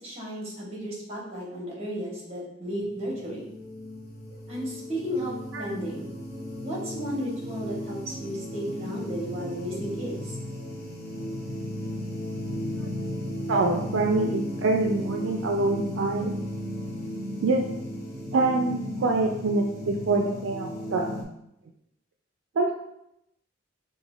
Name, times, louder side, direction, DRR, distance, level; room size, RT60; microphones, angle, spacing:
voice 1, 0.0-3.5 4.5-6.1 6.6-10.4, equal, 35° right, -4 dB, 1.2 m, -34 dB
sound 1, 2.7-21.2, left 1 dB, 55° left, 0.7 m, -35 dB
voice 2, 13.5-16.4 17.4-17.6 18.3-21.1 22.6-22.7, right 3 dB, 75° right, 2 dB, 0.4 m, -25 dB
5.0 x 2.2 x 2.4 m, 0.80 s
head